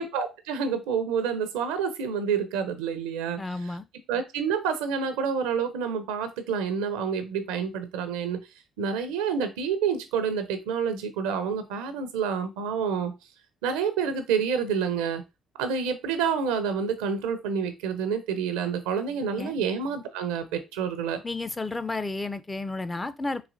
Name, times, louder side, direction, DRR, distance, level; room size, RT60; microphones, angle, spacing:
voice 1, 0.0-3.4 4.1-8.4 8.8-13.1 13.6-15.2 15.6-21.2, right 6 dB, 80° right, 0.5 m, -28 dB
voice 2, 3.4-3.9 19.3-19.5 21.2-23.5, left 3 dB, 25° left, 0.4 m, -32 dB
4.0 x 2.7 x 2.5 m
hypercardioid pair, 50°, 0 cm